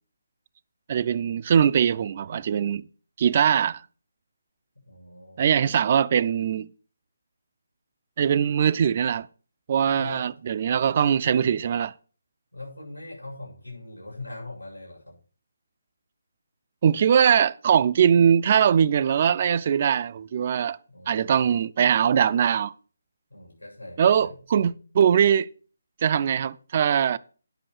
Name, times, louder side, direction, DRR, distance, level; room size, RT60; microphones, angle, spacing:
voice 1, 0.9-2.8 3.2-3.8 5.4-6.7 8.2-9.3 9.7-11.9 16.8-20.8 21.1-22.7 24.0-25.5 26.0-27.2, right 8 dB, 35° right, 0.4 m, -21 dB
voice 2, 4.8-5.4 9.9-10.3 12.5-15.2 20.9-21.5 23.3-24.7, left 2 dB, 85° left, 7.0 m, -41 dB
10.0 x 6.1 x 6.2 m
figure-of-eight pair, 145°, 0 cm